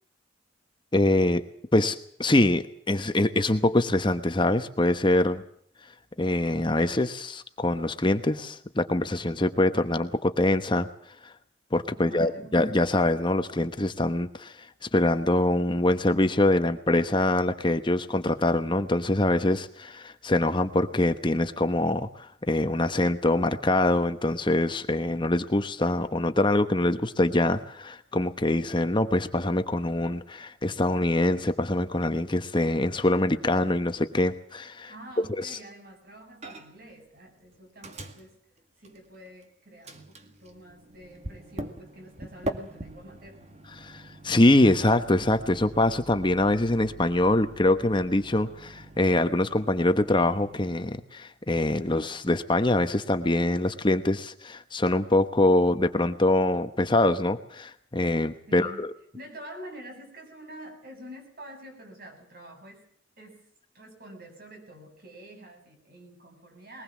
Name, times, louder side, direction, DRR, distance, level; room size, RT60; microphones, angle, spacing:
voice 1, 0.9-1.4 1.7-5.4 6.2-10.9 11.2-11.3 11.7-14.7 14.9-34.9 35.4-35.6 43.8-58.9, left 1 dB, 25° left, 9 dB, 1.1 m, -24 dB
voice 2, 12.0-12.7 34.9-38.3 38.8-43.6 58.5-58.8 59.1-62.9 63.2-63.5 63.7-66.8, right 1 dB, 50° right, 4 dB, 7.5 m, -47 dB
Microwave oven, 36.4-36.9 37.2-39.4 39.8-50.9, right 1 dB, 35° right, 2.0 m, -43 dB
22.0 x 19.5 x 7.4 m, 0.63 s
head